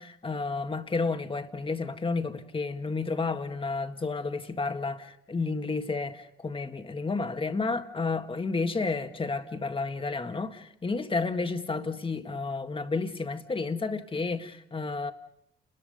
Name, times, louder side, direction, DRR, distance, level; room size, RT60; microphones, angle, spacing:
voice 1, 0.0-15.1, left 3 dB, 25° left, 1.9 m, -31 dB
30.0 x 21.5 x 5.4 m
cardioid pair, 90°, 20 cm